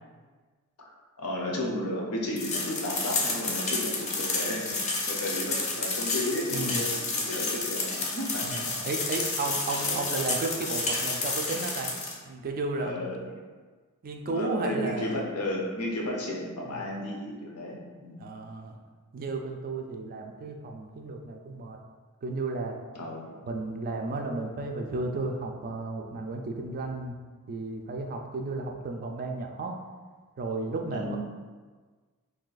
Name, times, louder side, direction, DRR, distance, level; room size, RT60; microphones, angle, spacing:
voice 1, 1.2-8.6 9.8-10.1 12.8-13.4 14.3-18.3 23.0-23.4 30.9-31.2, left 1 dB, 85° left, -2 dB, 0.7 m, -33 dB
sound 1, 2.4-12.1, left 3 dB, 30° left, 0.5 m, -30 dB
voice 2, 6.5-6.8 8.4-11.9 12.2-13.3 14.0-15.2 16.7-16.9 18.2-18.8 19.1-21.8 22.2-22.8 23.4-27.2 27.5-29.8 30.4-31.2, right 3 dB, 40° right, 3 dB, 0.3 m, -33 dB
2.7 x 2.4 x 3.9 m, 1.4 s
head